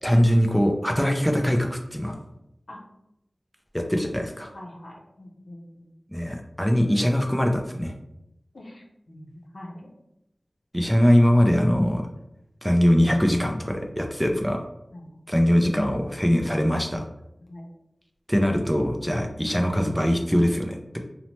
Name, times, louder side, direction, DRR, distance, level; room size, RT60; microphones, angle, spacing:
voice 1, 0.0-2.2 3.7-4.5 6.1-7.9 10.7-12.0 12.6-14.6 15.3-17.0 18.3-21.0, equal, ahead, 3 dB, 0.3 m, -22 dB
voice 2, 4.5-5.9 8.5-9.9 14.2-14.4 14.9-15.2 17.4-17.7, left 1 dB, 75° left, -1 dB, 0.5 m, -43 dB
2.8 x 2.0 x 2.9 m, 0.85 s
wide cardioid pair, 70°, 0 cm